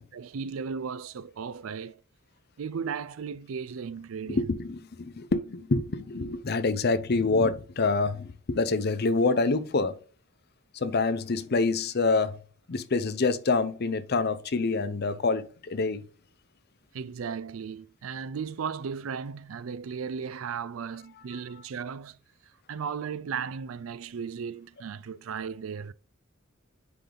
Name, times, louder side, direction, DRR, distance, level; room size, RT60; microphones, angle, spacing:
voice 1, 0.0-2.0 2.6-4.4 16.9-22.2 22.7-25.9, right 6 dB, 85° right, 0.4 m, -36 dB
voice 2, 4.3-9.9 10.7-12.4 12.7-16.0, left 3 dB, 50° left, 0.6 m, -26 dB
9.7 x 3.9 x 3.4 m
head